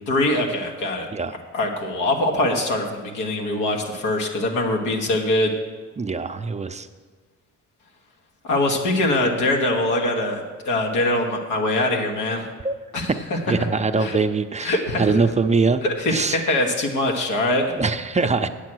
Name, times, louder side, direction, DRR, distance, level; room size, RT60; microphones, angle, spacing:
voice 1, 0.1-1.1 1.5-5.5 8.4-12.5 12.9-13.4 14.0-14.2 14.6-15.2 15.8-17.7, left 1 dB, 90° left, 1 dB, 1.4 m, -23 dB
voice 2, 6.0-6.9 12.6-12.7 13.5-15.8 16.1-16.4 17.7-18.5, right 4 dB, 25° right, 9 dB, 0.5 m, -22 dB
8.7 x 8.3 x 6.2 m, 1.5 s
cardioid pair, 90°, 30 cm